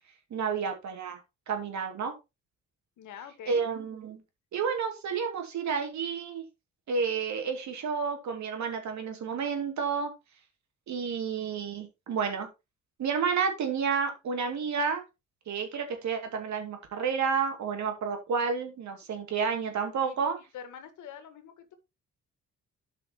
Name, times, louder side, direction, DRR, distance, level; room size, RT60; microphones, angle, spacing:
voice 1, 0.3-1.2 1.5-2.1 3.5-4.2 4.5-6.4 6.9-10.1 10.9-12.5 13.0-15.0 15.5-20.4, right 6 dB, 65° right, 4 dB, 2.7 m, -30 dB
voice 2, 3.0-3.6 20.0-20.2 20.5-21.8, left 8 dB, 80° left, 9 dB, 1.8 m, -45 dB
12.5 x 5.7 x 3.1 m, 0.24 s
cardioid pair, 90°, 30 cm